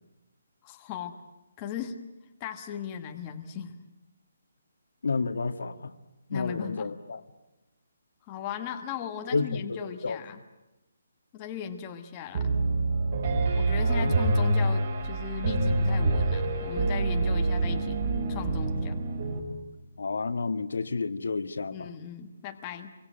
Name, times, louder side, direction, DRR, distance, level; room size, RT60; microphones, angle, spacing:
voice 1, 0.6-1.2 1.6-2.0 2.4-3.7 6.3-6.9 8.3-10.4 11.3-12.5 13.5-19.0 21.7-22.9, left 8 dB, 15° left, 5 dB, 1.2 m, -37 dB
voice 2, 5.0-5.9 6.3-7.2 9.3-9.8 10.0-10.2 13.4-13.5 13.8-14.1 20.0-21.9, left 4 dB, 80° left, 7 dB, 1.9 m, -30 dB
Piano, 12.3-19.4, right 2 dB, 30° right, 4.5 m, -26 dB
27.5 x 23.5 x 9.2 m, 0.98 s
hypercardioid pair, 180°, 0 cm